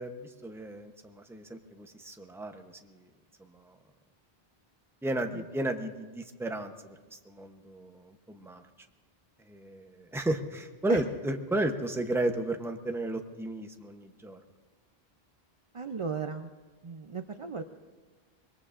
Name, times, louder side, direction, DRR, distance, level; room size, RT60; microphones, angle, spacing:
voice 1, 0.0-3.1 3.4-3.8 5.0-8.6 9.5-14.4, right 1 dB, 5° right, 6 dB, 0.7 m, -34 dB
voice 2, 15.7-16.5 16.8-17.6, right 5 dB, 40° right, 7 dB, 0.5 m, -35 dB
25.0 x 21.0 x 2.5 m, 1.4 s
omnidirectional pair, 1.0 m